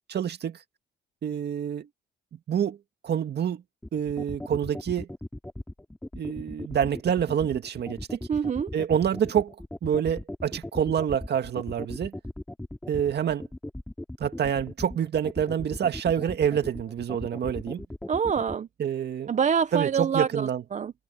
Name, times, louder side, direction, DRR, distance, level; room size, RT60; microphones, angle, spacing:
voice 1, 0.1-0.6 1.2-1.9 2.5-2.8 3.0-3.6 3.9-5.1 6.2-8.2 8.7-9.5 9.8-12.2 12.9-13.4 14.2-17.8 18.8-19.3 19.7-20.6, right 8 dB, 55° right, 2.1 m, -27 dB
sound 1, 3.8-18.6, left 1 dB, 10° left, 2.8 m, -37 dB
voice 2, 8.3-8.7 18.1-18.7 19.3-20.9, right 7 dB, 35° right, 0.6 m, -26 dB
cardioid pair, 90°, 20 cm